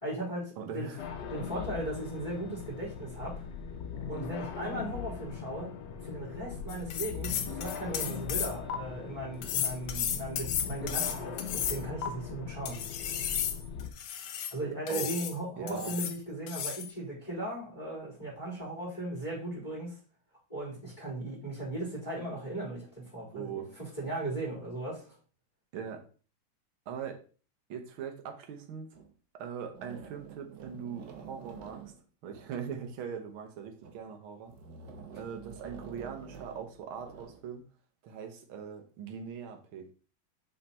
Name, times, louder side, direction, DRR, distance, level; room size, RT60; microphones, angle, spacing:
voice 1, 0.0-0.9 1.3-3.5 4.1-5.7 6.0-12.8 14.5-20.0 20.5-25.2, right 1 dB, 15° left, -9 dB, 3.7 m, -37 dB
voice 2, 0.6-1.0 14.9-15.1 15.6-15.9 23.3-23.7 25.7-26.0 26.9-27.2 27.7-28.9 29.4-31.8 32.2-34.5 35.2-37.6 38.0-39.9, right 7 dB, 80° right, 5 dB, 1.9 m, -41 dB
sound 1, 1.0-13.9, left 7 dB, 65° left, 1.3 m, -40 dB
sound 2, 6.7-8.7 9.4-12.1 12.6-14.5 14.9-15.3 15.7-16.2 16.5-16.9, left 9 dB, 85° left, 1.7 m, -34 dB
sound 3, 28.9-29.1 29.7-33.0 33.6-34.1 34.5-37.5, right 6 dB, 60° right, 1.6 m, -49 dB
6.8 x 4.1 x 4.3 m, 0.38 s
omnidirectional pair, 2.3 m